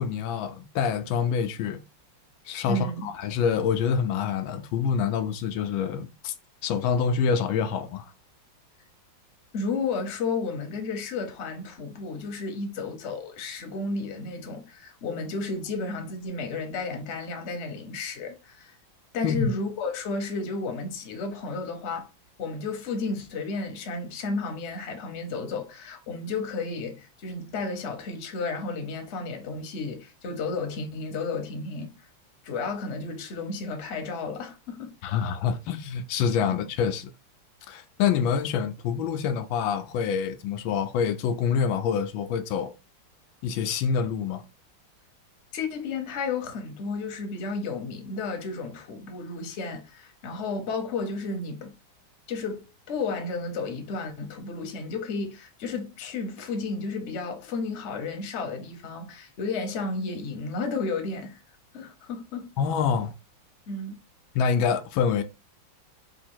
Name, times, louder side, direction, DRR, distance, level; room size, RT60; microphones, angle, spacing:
voice 1, 0.0-1.8 2.5-6.3 6.6-8.1 19.2-19.5 35.0-37.1 37.7-42.7 43.4-44.4 62.6-63.1 64.3-65.2, left 6 dB, 90° left, 1.4 m, -26 dB
voice 2, 2.7-3.1 9.5-18.7 19.1-22.1 22.4-31.9 32.4-35.3 45.5-51.7 52.3-61.4 61.7-62.5 63.7-64.0, left 3 dB, 50° left, 0.9 m, -32 dB
3.6 x 2.8 x 4.3 m
omnidirectional pair, 2.1 m